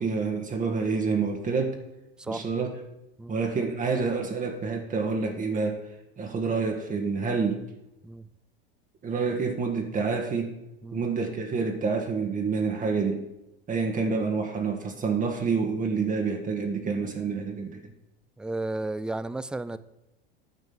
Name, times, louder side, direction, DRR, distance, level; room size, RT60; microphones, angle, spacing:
voice 1, 0.0-1.8 2.3-2.7 3.3-5.8 6.2-7.6 9.0-10.6 10.9-13.3 13.7-17.9, right 4 dB, 25° right, 4 dB, 1.5 m, -28 dB
voice 2, 18.4-19.8, right 2 dB, 5° right, 15 dB, 0.4 m, -33 dB
9.4 x 5.2 x 7.9 m, 0.93 s
hypercardioid pair, 95°, 29 cm